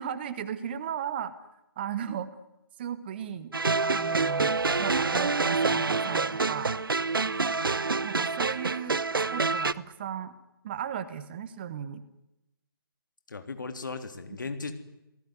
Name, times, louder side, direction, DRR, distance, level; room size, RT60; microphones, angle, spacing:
voice 1, 0.0-1.3 1.8-2.3 2.8-3.5 3.8-6.7 8.0-9.0 9.3-10.3 10.6-12.0, right 9 dB, 25° right, 14 dB, 1.4 m, -36 dB
sound 1, 3.5-9.7, right 4 dB, 65° right, 1.0 m, -27 dB
voice 2, 13.3-14.7, left 4 dB, 55° left, 8 dB, 3.4 m, -36 dB
28.5 x 18.5 x 9.6 m, 0.92 s
figure-of-eight pair, 145°, 13 cm